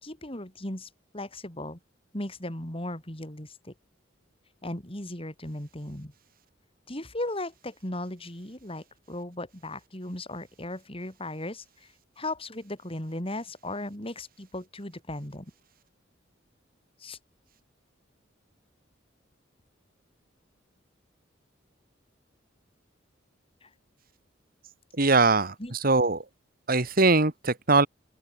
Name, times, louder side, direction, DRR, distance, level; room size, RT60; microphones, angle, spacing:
voice 1, 0.0-1.8 2.1-3.7 4.6-6.1 6.9-11.9 12.2-15.5 17.0-17.2 23.6-23.7 25.6-25.7, left 1 dB, 30° left, 4.8 m, -37 dB
voice 2, 25.0-26.2 26.7-27.9, right 3 dB, 50° right, 2.1 m, -22 dB
open air
head